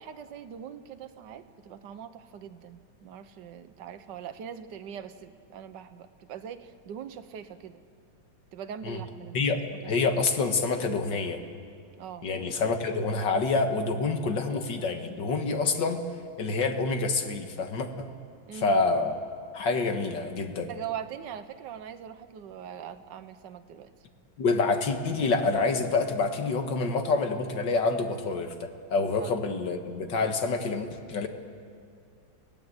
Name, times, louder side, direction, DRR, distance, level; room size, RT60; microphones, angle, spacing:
voice 1, 0.0-7.8 8.5-9.4 9.8-10.0 12.0-12.3 18.5-18.8 20.7-23.9 29.2-29.4, right 8 dB, 65° right, 9 dB, 1.6 m, -41 dB
voice 2, 9.9-11.4 12.2-16.0 16.4-18.1 18.5-19.2 19.5-20.7 24.4-31.3, left 4 dB, 65° left, 6 dB, 2.1 m, -27 dB
29.0 x 17.5 x 8.0 m, 2.3 s
omnidirectional pair, 2.2 m